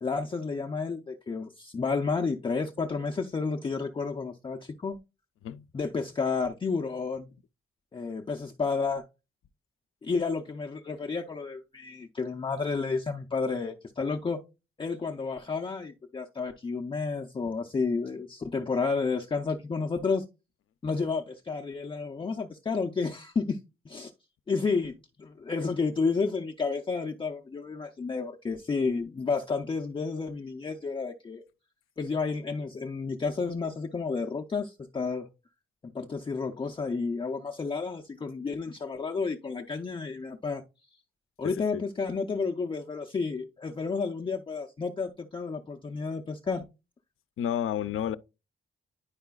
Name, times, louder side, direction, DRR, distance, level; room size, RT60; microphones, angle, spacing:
voice 1, 0.0-5.0 5.7-7.3 7.9-9.0 10.0-14.4 14.8-20.2 20.8-23.6 23.9-24.1 24.5-31.4 32.0-35.3 35.8-40.6 41.4-46.7, left 4 dB, 25° left, 0.4 m, -31 dB
voice 2, 41.4-41.8 47.4-48.2, left 10 dB, 80° left, 0.4 m, -31 dB
10.0 x 4.8 x 2.2 m
wide cardioid pair, 165°, 21 cm